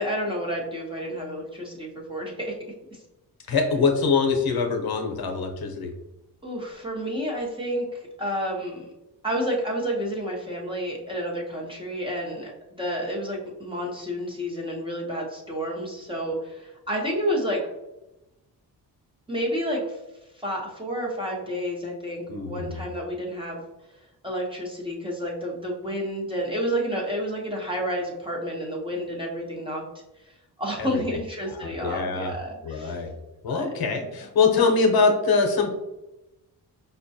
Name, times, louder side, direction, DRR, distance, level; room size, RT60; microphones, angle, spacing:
voice 1, 0.0-2.5 3.5-3.6 6.4-8.9 9.2-17.7 19.3-20.0 20.3-23.6 24.2-29.8 30.2-30.3 30.6-33.0 33.5-33.7, equal, 15° right, -3 dB, 0.7 m, -30 dB
voice 2, 3.5-5.9 22.3-22.8 30.8-31.0 31.4-32.3 32.6-33.1 33.4-35.7, left 4 dB, 65° left, 3 dB, 0.7 m, -23 dB
5.3 x 2.2 x 2.7 m, 0.97 s
wide cardioid pair, 145°, 40 cm